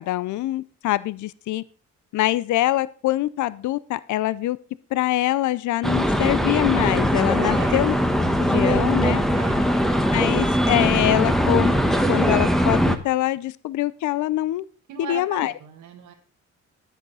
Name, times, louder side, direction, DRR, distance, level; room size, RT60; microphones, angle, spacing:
voice 1, 0.0-1.6 2.1-4.6 4.9-7.9 8.2-9.2 10.1-11.7 12.1-14.6 15.0-15.5, left 15 dB, 75° left, 19 dB, 0.6 m, -24 dB
sound 1, 5.8-13.0, equal, ahead, 1.2 m, -21 dB
voice 2, 7.5-7.8 9.3-9.7 14.9-16.1, right 8 dB, 85° right, 2 dB, 1.5 m, -37 dB
10.5 x 9.3 x 4.0 m, 0.38 s
cardioid pair, 90°, 30 cm